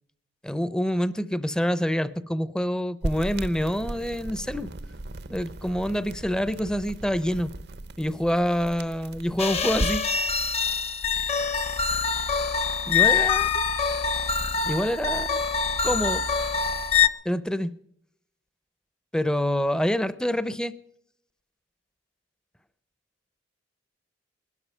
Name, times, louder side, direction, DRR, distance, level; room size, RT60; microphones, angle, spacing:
voice 1, 0.4-4.7 5.3-7.5 8.0-10.0 12.9-13.6 14.7-15.4 15.8-16.2 17.2-17.7 19.1-20.7, equal, 5° left, 15 dB, 0.6 m, -26 dB
sound 1, 3.0-10.1, right 1 dB, 60° right, 0.7 m, -36 dB
sound 2, 9.4-17.1, left 6 dB, 35° left, 0.8 m, -25 dB
20.0 x 12.0 x 5.5 m, 0.72 s
head